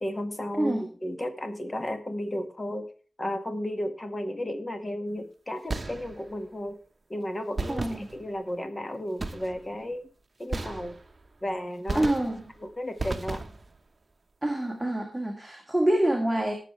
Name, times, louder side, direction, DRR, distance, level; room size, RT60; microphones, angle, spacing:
voice 1, 0.0-2.9 3.2-6.8 7.1-10.1 10.4-11.0 11.4-12.1 12.6-13.4, left 1 dB, 25° left, 7 dB, 1.8 m, -33 dB
sound 1, 5.7-6.4 7.6-8.5 9.2-9.8 10.5-11.3 11.9-12.6 13.0-13.8, right 3 dB, 35° right, 1.1 m, -35 dB
voice 2, 7.7-8.1 11.9-12.5 14.4-16.5, right 1 dB, 5° right, 1 dB, 2.2 m, -26 dB
19.0 x 7.3 x 3.3 m, 0.39 s
wide cardioid pair, 75°, 0 cm